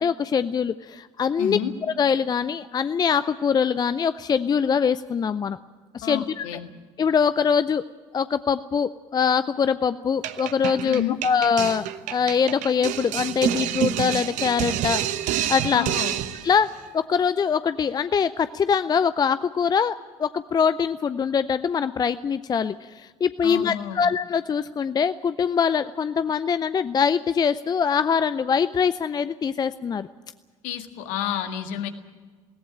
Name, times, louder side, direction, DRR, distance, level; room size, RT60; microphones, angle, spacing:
voice 1, 0.0-1.6 2.0-5.6 5.9-6.5 7.0-7.8 8.1-11.9 12.1-15.0 15.5-15.9 16.4-30.1, left 6 dB, 25° left, 14 dB, 0.6 m, -23 dB
voice 2, 1.4-1.7 6.0-6.7 10.8-11.2 15.7-16.2 23.4-24.0 30.6-31.9, left 10 dB, 60° left, 7 dB, 1.8 m, -30 dB
sound 1, 10.2-16.6, right 12 dB, 55° right, 1.1 m, -28 dB
20.0 x 18.0 x 8.9 m, 1.4 s
figure-of-eight pair, 55°, 15 cm